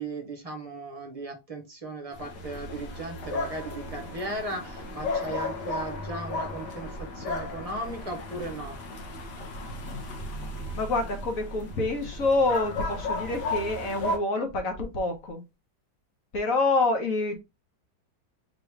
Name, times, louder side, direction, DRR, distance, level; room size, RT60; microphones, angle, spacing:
voice 1, 0.0-8.8, right 2 dB, 30° right, 0.8 m, -37 dB
sound 1, 2.1-14.2, left 2 dB, 80° left, 1.8 m, -34 dB
voice 2, 10.7-15.4 16.3-17.4, left 3 dB, 55° left, 1.5 m, -27 dB
4.7 x 3.2 x 3.3 m
omnidirectional pair, 1.8 m